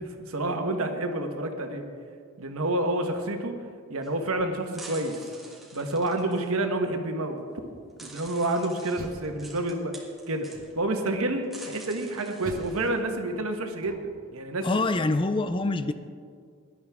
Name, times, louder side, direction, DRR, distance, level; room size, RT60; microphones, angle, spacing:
voice 1, 0.0-1.9 2.4-3.6 3.9-5.2 5.7-7.4 8.0-10.0 10.3-14.8, right 2 dB, 80° right, 5 dB, 1.3 m, -29 dB
sound 1, 4.0-4.1 4.7-6.5 7.4-7.5 8.0-10.7 11.4-13.0, right 2 dB, ahead, 1.5 m, -47 dB
Door, 8.7-9.9 10.5-11.1 12.4-14.3, right 1 dB, 40° right, 0.9 m, -45 dB
voice 2, 14.6-15.9, left 2 dB, 25° left, 11 dB, 0.4 m, -25 dB
17.5 x 11.5 x 3.6 m, 2.1 s
head